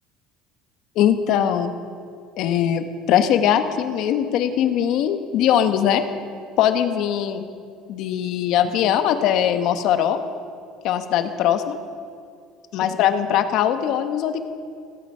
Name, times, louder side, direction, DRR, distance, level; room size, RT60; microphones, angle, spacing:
voice 1, 1.0-1.7 2.4-6.0 6.6-7.4 7.9-10.2 10.8-11.8 12.7-14.4, left 10 dB, 55° left, 8 dB, 1.1 m, -21 dB
16.0 x 15.5 x 5.5 m, 2.3 s
cardioid pair, 160°, 0 cm